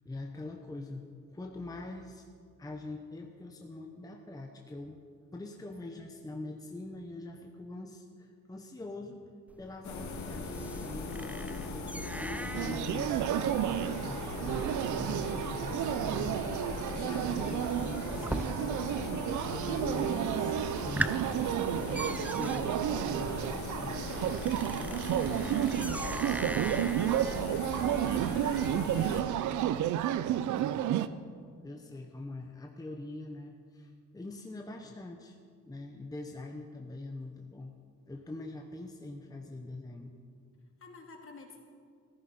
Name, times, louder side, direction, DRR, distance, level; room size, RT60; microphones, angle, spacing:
voice 1, 0.0-2.3 2.6-5.0 5.3-9.2 9.6-21.2 21.7-24.1 31.6-35.4 35.7-37.8 38.1-40.1, left 2 dB, 10° left, 2 dB, 1.0 m, -43 dB
sound 1, 9.5-19.1 19.3-19.9 20.3-20.4 20.7-29.1, right 1 dB, 5° right, 0.4 m, -42 dB
sound 2, 9.8-29.2, left 3 dB, 70° left, 2.0 m, -39 dB
sound 3, 12.5-31.1, right 11 dB, 75° right, 0.6 m, -31 dB
voice 2, 21.6-22.3 24.9-29.6 40.8-41.6, left 4 dB, 45° left, 2 dB, 2.4 m, -51 dB
15.5 x 14.0 x 4.3 m, 2.2 s
cardioid pair, 90°, 30 cm